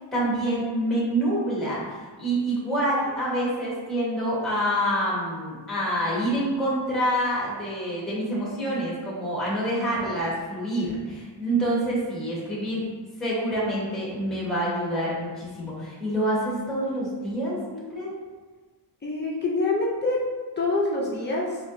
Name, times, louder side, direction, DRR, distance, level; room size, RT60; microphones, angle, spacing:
voice 1, 0.1-12.9 13.2-18.1, right 1 dB, ahead, -6 dB, 0.9 m, -27 dB
voice 2, 19.0-20.2 20.6-21.5, left 2 dB, 25° left, -4 dB, 0.4 m, -25 dB
4.2 x 2.7 x 2.5 m, 1.4 s
wide cardioid pair, 175°, 45 cm